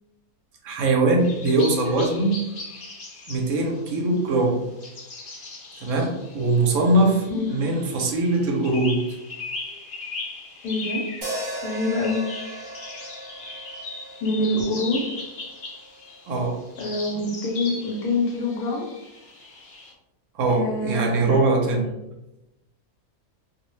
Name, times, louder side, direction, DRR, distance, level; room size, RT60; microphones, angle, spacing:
voice 1, 0.6-2.4 3.3-4.6 5.8-9.0 16.3-16.6 20.3-21.9, right 2 dB, 70° right, 1 dB, 0.8 m, -22 dB
sound 1, 1.2-19.9, left 3 dB, 55° left, 0.7 m, -39 dB
voice 2, 10.6-11.0 11.6-12.2 14.2-15.0 16.8-18.9 20.5-21.4, left 2 dB, 85° left, -2 dB, 1.1 m, -25 dB
sound 2, 11.2-15.5, right 1 dB, 40° right, 1.0 m, -36 dB
2.5 x 2.0 x 3.0 m, 0.94 s
omnidirectional pair, 1.6 m